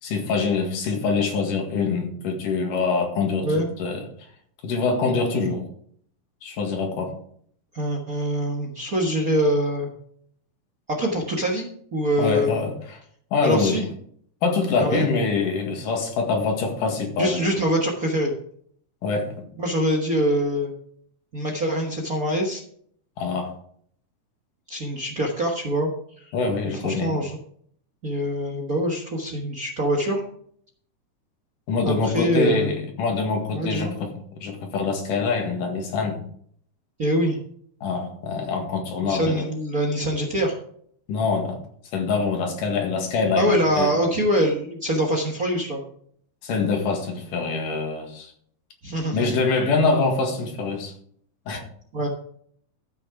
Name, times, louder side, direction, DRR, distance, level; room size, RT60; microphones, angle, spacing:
voice 1, 0.0-4.0 4.6-5.6 6.4-7.1 12.2-12.7 13.3-13.8 14.4-17.4 19.0-19.3 23.2-23.5 26.3-27.1 31.7-34.1 34.4-36.2 37.8-39.4 41.1-41.6 41.9-43.9 46.4-48.3 49.1-50.9 51.5-51.6, left 4 dB, 75° left, 2 dB, 3.4 m, -24 dB
voice 2, 7.7-9.9 10.9-12.6 13.4-13.9 14.8-15.0 17.2-18.3 19.6-20.7 21.3-22.6 24.7-25.9 26.2-26.3 26.6-27.4 28.0-30.2 31.8-32.7 33.5-33.9 37.0-37.4 39.0-40.5 43.4-45.8 48.8-49.3 51.9-52.1, equal, 50° right, 1 dB, 1.0 m, -24 dB
13.5 x 6.4 x 4.8 m, 0.62 s
omnidirectional pair, 3.9 m